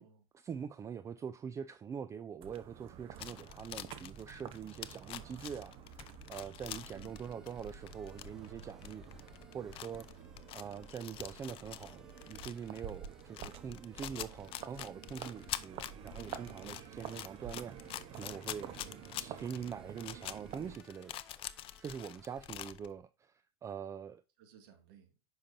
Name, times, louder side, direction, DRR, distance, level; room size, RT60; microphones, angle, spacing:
voice 1, 0.3-9.0 9.5-10.2 10.5-18.7 19.2-21.2 21.8-24.2, right 7 dB, 20° right, 0.4 m, -44 dB
sound 1, 2.4-20.8, right 9 dB, 45° right, 0.9 m, -50 dB
sound 2, 3.2-22.9, left 13 dB, 40° left, 0.6 m, -46 dB
sound 3, 6.8-22.5, equal, 5° right, 1.1 m, -66 dB
voice 2, 24.4-25.2, right 7 dB, 65° right, 2.1 m, -60 dB
8.7 x 5.7 x 2.6 m
hypercardioid pair, 100°, 14 cm